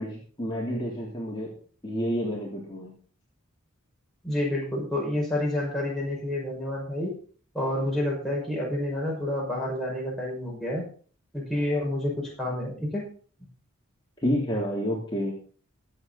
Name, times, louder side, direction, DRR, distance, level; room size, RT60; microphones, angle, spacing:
voice 1, 0.0-1.5 1.8-2.9 14.2-15.3, equal, 20° left, -4 dB, 3.4 m, -29 dB
voice 2, 4.2-7.1 7.5-10.9 11.3-13.1, left 1 dB, ahead, -4 dB, 5.8 m, -29 dB
23.5 x 8.1 x 4.2 m, 0.43 s
head